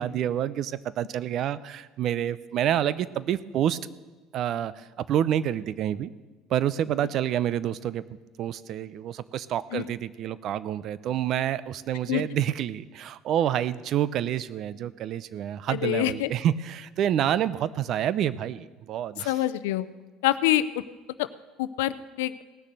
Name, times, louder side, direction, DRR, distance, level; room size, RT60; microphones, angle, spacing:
voice 1, 0.0-3.8 4.3-6.1 6.5-19.3, right 10 dB, 55° right, 18 dB, 0.6 m, -28 dB
voice 2, 15.7-16.3 19.2-19.9 20.2-20.7 21.2-21.3 21.6-22.4, left 15 dB, 85° left, 15 dB, 0.6 m, -25 dB
18.0 x 6.6 x 7.6 m, 1.2 s
supercardioid pair, 100°, 0 cm